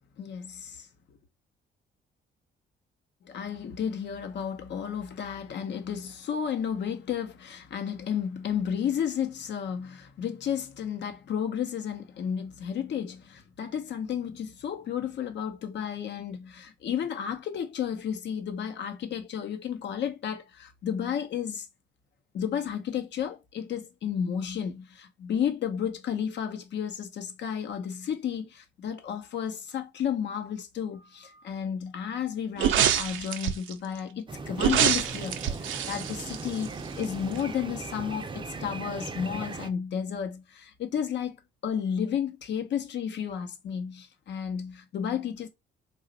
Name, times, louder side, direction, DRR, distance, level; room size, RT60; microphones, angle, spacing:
voice 1, 0.2-0.9 3.2-21.7 22.3-41.4 41.6-45.5, left 8 dB, 65° left, 0.8 m, -32 dB
sound 1, 32.6-33.7 34.6-37.0 37.4-37.5, right 9 dB, 80° right, 0.5 m, -26 dB
sound 2, 34.3-39.7, right 4 dB, 25° right, 0.5 m, -38 dB
3.1 x 2.3 x 3.8 m
cardioid pair, 90°, 20 cm